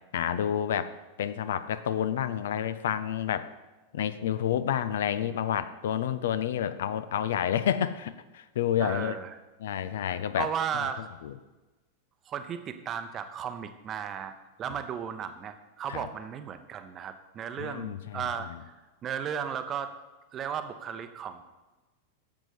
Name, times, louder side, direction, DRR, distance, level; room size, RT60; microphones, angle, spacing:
voice 1, 0.1-0.9 1.2-3.5 3.9-9.2 9.6-10.9 11.2-11.3 15.9-16.1 17.6-18.2 18.5-18.6, left 9 dB, 60° left, 12 dB, 0.5 m, -29 dB
voice 2, 8.8-9.3 9.9-11.1 12.3-18.7 19.0-19.9 20.3-21.4, right 8 dB, 30° right, 10 dB, 0.8 m, -35 dB
10.5 x 7.4 x 5.2 m, 1.2 s
figure-of-eight pair, 90°, 0 cm